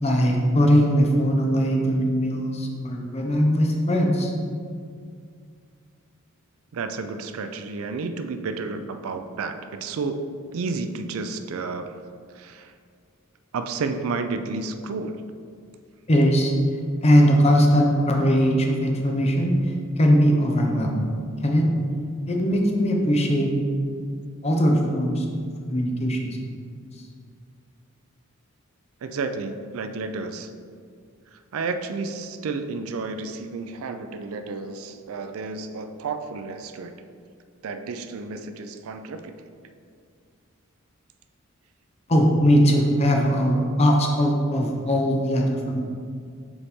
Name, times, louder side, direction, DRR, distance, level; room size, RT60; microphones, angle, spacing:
voice 1, 0.0-4.3 16.1-16.5 17.0-19.5 20.0-21.1 21.4-21.7 22.3-23.5 24.4-25.2 25.7-26.5 42.1-45.8, equal, 30° left, 1 dB, 0.7 m, -20 dB
voice 2, 6.7-12.0 12.3-12.7 13.5-15.2 29.0-30.5 31.3-36.9 37.6-39.3, right 4 dB, 75° right, 8 dB, 0.4 m, -31 dB
6.9 x 4.1 x 3.6 m, 2.2 s
head